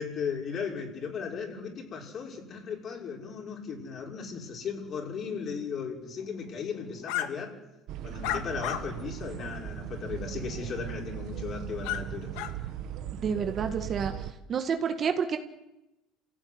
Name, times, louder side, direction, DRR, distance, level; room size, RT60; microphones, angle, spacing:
voice 1, 0.0-7.6 8.0-12.3, left 6 dB, 40° left, 0 dB, 6.1 m, -36 dB
sound 1, 7.1-7.3 8.2-8.8 9.4-9.5 11.8-12.0 12.3-12.5, left 12 dB, 80° left, 2.0 m, -31 dB
sound 2, 7.9-14.3, right 10 dB, 60° right, 1.5 m, -38 dB
voice 2, 13.2-14.1 14.5-15.4, right 6 dB, 35° right, 6 dB, 1.7 m, -29 dB
28.5 x 16.5 x 9.6 m, 0.98 s
cardioid pair, 140°, 0 cm